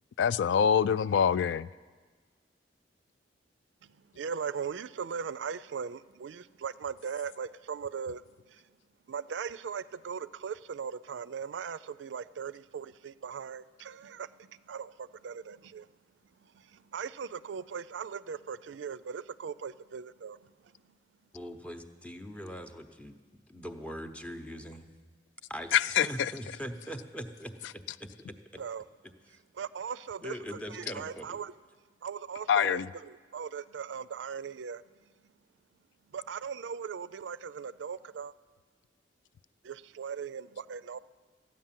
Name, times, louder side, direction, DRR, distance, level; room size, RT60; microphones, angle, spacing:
voice 1, 0.2-1.7 25.7-26.1 32.5-32.9, left 8 dB, 80° left, 0.3 m, -25 dB
voice 2, 3.8-8.2 8.5-8.6 9.1-15.9 16.4-20.9 28.6-28.8 29.6-31.5 32.0-34.8 36.1-38.3 39.6-41.0, right 6 dB, 90° right, 0.4 m, -39 dB
voice 3, 21.3-23.2 23.5-24.9 25.5-28.6 29.0-29.4 30.2-31.4, equal, 5° left, 0.7 m, -42 dB
14.0 x 9.4 x 7.4 m
head